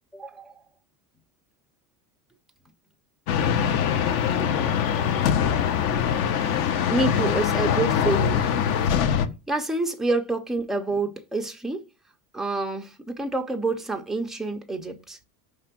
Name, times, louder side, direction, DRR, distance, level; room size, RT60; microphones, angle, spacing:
voice 1, 0.1-0.6 4.4-4.9 6.9-8.5 9.3-11.9 12.3-15.2, right 2 dB, ahead, 0.3 m, -28 dB
sound 1, 3.3-9.3, left 8 dB, 50° left, 0.9 m, -23 dB
5.8 x 3.3 x 5.8 m
supercardioid pair, 140°, 47 cm